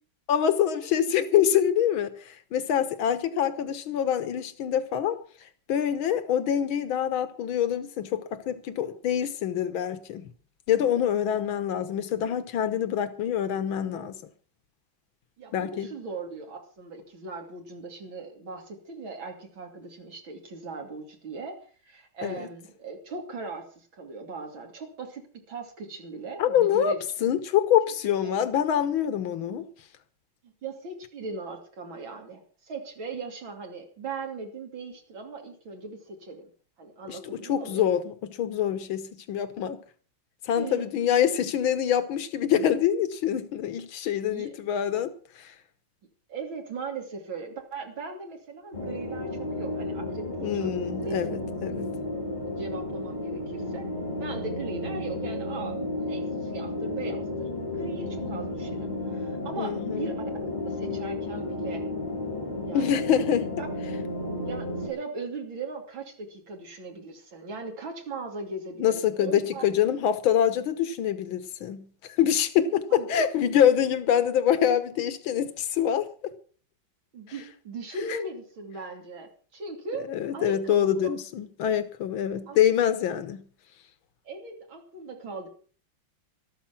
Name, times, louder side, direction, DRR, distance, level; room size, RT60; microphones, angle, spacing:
voice 1, 0.3-5.2 5.7-10.2 10.7-14.2 15.5-15.9 22.2-22.5 26.4-29.7 37.1-39.8 40.5-45.1 45.4-45.5 50.4-51.8 59.6-60.1 62.7-63.5 68.8-71.9 72.2-76.1 80.1-83.4, left 9 dB, 90° left, 1.9 m, -25 dB
voice 2, 15.4-27.0 28.2-28.3 30.4-36.5 36.8-37.8 40.5-41.2 44.3-44.6 46.3-51.3 51.7-52.0 52.5-53.9 54.2-60.2 60.7-61.8 62.6-63.0 63.6-63.7 64.5-69.6 72.9-73.1 77.1-81.1 82.5-82.6 84.3-85.5, right 3 dB, 75° right, 3.6 m, -39 dB
sound 1, 48.7-64.9, left 2 dB, 20° left, 5.6 m, -32 dB
13.5 x 13.0 x 5.9 m
omnidirectional pair, 2.1 m